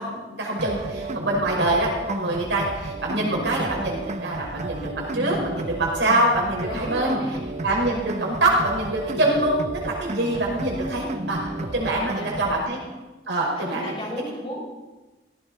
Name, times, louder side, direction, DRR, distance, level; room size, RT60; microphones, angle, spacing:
voice 1, 0.0-7.1 7.6-12.8 13.3-13.9, right 1 dB, 85° right, -2 dB, 5.7 m, -25 dB
sound 1, 0.6-12.6, right 2 dB, 40° right, 0.9 m, -33 dB
voice 2, 6.6-7.4 11.6-12.7 13.6-14.6, equal, 30° left, -3 dB, 6.5 m, -35 dB
17.5 x 17.5 x 4.5 m, 1.2 s
head